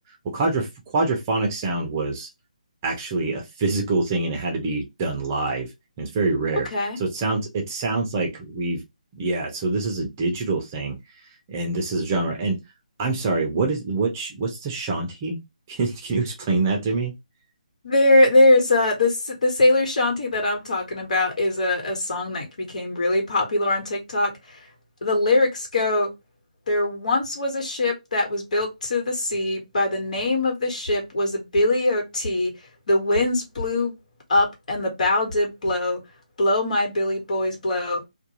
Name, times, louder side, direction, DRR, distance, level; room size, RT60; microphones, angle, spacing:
voice 1, 0.1-2.3 2.8-5.7 6.0-6.7 7.0-8.8 9.1-11.0 11.5-12.6 13.0-15.4 15.7-17.1, right 3 dB, 20° right, 0.6 m, -25 dB
voice 2, 17.8-24.7 25.0-26.1 26.7-32.5 32.9-33.9 34.3-36.0 36.4-38.0, left 2 dB, 60° left, 1.4 m, -22 dB
2.4 x 2.3 x 2.8 m
hypercardioid pair, 170°, 4 cm